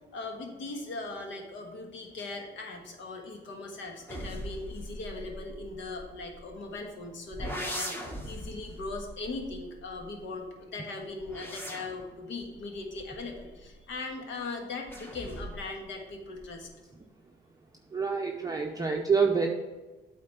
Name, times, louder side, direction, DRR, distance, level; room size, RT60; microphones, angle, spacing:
voice 1, 0.1-16.7, left 3 dB, 70° left, 2 dB, 1.5 m, -39 dB
sound 1, 4.1-6.8 7.3-10.4 11.0-14.0 14.9-15.8 16.1-16.7, equal, 10° left, 1.2 m, -41 dB
voice 2, 17.9-19.5, right 5 dB, 20° right, 2 dB, 0.6 m, -27 dB
8.5 x 4.0 x 5.6 m, 1.2 s
cardioid pair, 90°, 20 cm